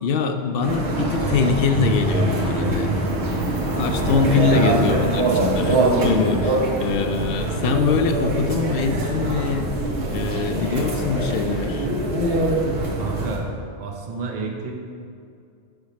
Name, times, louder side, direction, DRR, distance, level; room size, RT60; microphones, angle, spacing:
voice 1, 0.0-3.0 3.8-9.7 10.1-11.9, left 5 dB, 65° left, 6 dB, 0.7 m, -23 dB
sound 1, 0.6-13.4, right 2 dB, 85° right, 1.2 m, -23 dB
voice 2, 13.0-13.5 13.8-14.8, right 4 dB, 45° right, 0 dB, 0.7 m, -31 dB
5.2 x 4.6 x 5.7 m, 2.4 s
omnidirectional pair, 1.1 m